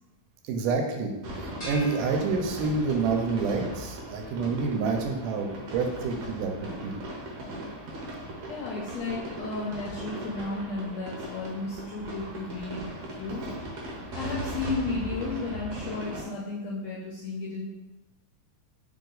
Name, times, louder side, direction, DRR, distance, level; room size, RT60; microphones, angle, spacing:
voice 1, 0.5-1.1 1.4-7.0, right 4 dB, 85° right, 4 dB, 2.1 m, -28 dB
sound 1, 1.2-16.2, right 1 dB, 70° right, 1.8 m, -38 dB
sound 2, 1.6-3.1, equal, 50° left, 0.5 m, -42 dB
voice 2, 8.5-13.5 14.1-17.7, left 3 dB, 85° left, -4 dB, 1.5 m, -34 dB
4.7 x 2.8 x 3.9 m, 1.1 s
omnidirectional pair, 3.7 m